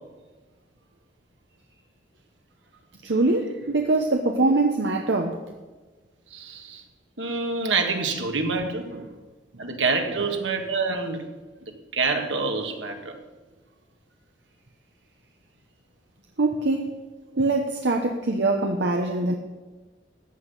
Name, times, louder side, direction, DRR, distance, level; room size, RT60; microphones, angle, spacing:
voice 1, 3.0-5.4 8.9-9.1 10.2-10.3 16.4-17.0 17.4-19.3, right 2 dB, 75° right, 3 dB, 1.0 m, -23 dB
voice 2, 6.3-6.8 7.2-8.9 9.6-11.2 11.9-13.2, right 4 dB, 90° right, 4 dB, 1.9 m, -26 dB
14.5 x 5.9 x 8.3 m, 1.3 s
head